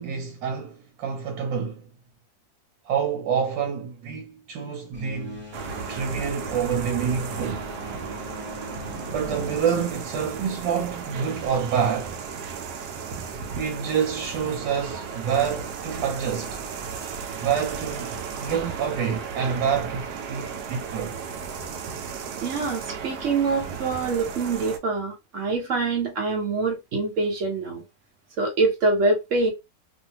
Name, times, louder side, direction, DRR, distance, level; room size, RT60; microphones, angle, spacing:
voice 1, 0.0-1.9 2.8-5.4 5.9-7.7 9.1-12.2 13.6-16.6 17.3-21.2, right 7 dB, 90° right, 1.3 m, -27 dB
sound 1, 4.9-11.0, left 1 dB, 10° right, 0.7 m, -41 dB
sound 2, 5.5-24.8, right 6 dB, 75° right, 1.0 m, -35 dB
voice 2, 22.4-27.8 28.4-29.5, right 3 dB, 50° right, 1.2 m, -25 dB
2.7 x 2.5 x 2.8 m
omnidirectional pair, 1.9 m